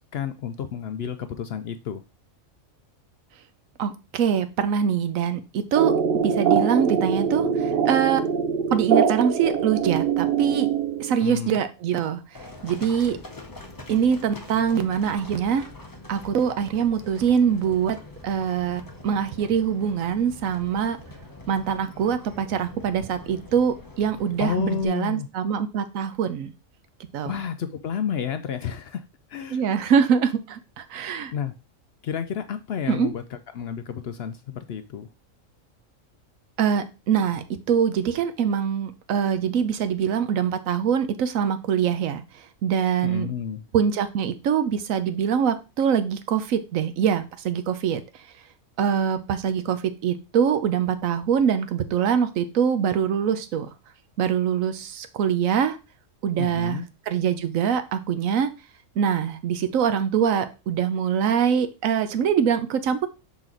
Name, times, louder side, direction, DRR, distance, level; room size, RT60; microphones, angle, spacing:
voice 1, 0.0-2.0 11.2-11.6 24.4-25.3 27.3-29.0 29.3-29.6 31.3-31.5 32.0-35.1 43.0-43.6 56.4-56.8, left 7 dB, 65° left, 9 dB, 0.7 m, -30 dB
voice 2, 3.8-5.9 6.2-8.2 8.7-10.7 11.0-12.2 12.6-13.2 13.9-15.7 16.1-18.0 18.2-21.0 21.5-26.5 27.1-27.3 29.5-31.3 32.9-33.1 36.6-42.2 42.6-43.3 43.7-48.0 48.8-53.7 54.2-55.8 56.2-58.5 59.0-63.1, right 8 dB, 85° right, 11 dB, 1.1 m, -24 dB
sound 1, 5.7-11.3, right 7 dB, 60° right, 0.7 m, -23 dB
Livestock farm animals working animals, 12.3-24.9, left 2 dB, 20° left, 0.7 m, -44 dB
6.0 x 4.1 x 3.8 m, 0.29 s
omnidirectional pair, 1.4 m